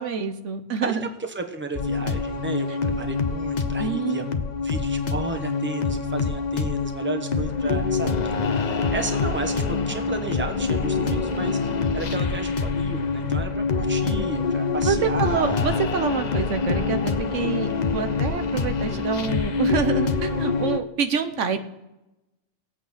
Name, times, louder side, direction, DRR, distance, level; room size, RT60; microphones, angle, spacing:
voice 1, 0.0-1.1 3.8-4.2 14.8-21.6, right 6 dB, 80° right, 9 dB, 1.3 m, -27 dB
voice 2, 0.8-4.2 4.6-8.1 8.4-15.6, right 3 dB, 10° right, 6 dB, 1.1 m, -33 dB
sound 1, 1.8-20.8, left 4 dB, 40° left, 0.8 m, -25 dB
18.0 x 8.4 x 5.7 m, 0.95 s
omnidirectional pair, 1.2 m